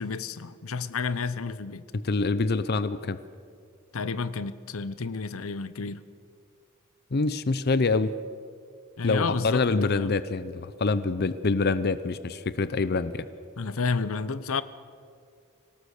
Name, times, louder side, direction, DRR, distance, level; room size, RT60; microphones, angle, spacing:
voice 1, 0.0-1.8 3.9-6.0 9.0-10.1 13.6-14.6, left 4 dB, 85° left, 0.8 m, -31 dB
voice 2, 1.9-3.2 7.1-8.1 9.0-13.3, left 3 dB, 50° left, 0.6 m, -26 dB
25.5 x 18.0 x 6.6 m
head